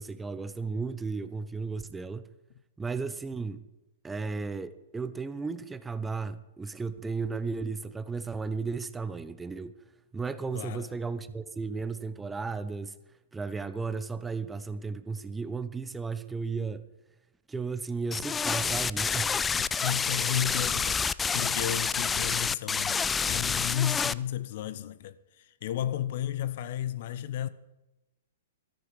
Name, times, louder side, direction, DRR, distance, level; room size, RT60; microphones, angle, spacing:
voice 1, 0.0-2.2 2.8-3.6 4.0-9.7 10.1-13.0 13.3-16.9 17.5-19.4, right 4 dB, 10° right, 0.7 m, -34 dB
voice 2, 10.5-10.9 19.6-27.5, left 11 dB, 50° left, 0.8 m, -33 dB
sound 1, 18.1-24.1, left 5 dB, 15° left, 0.3 m, -28 dB
14.0 x 13.5 x 4.8 m
figure-of-eight pair, 110°, 0 cm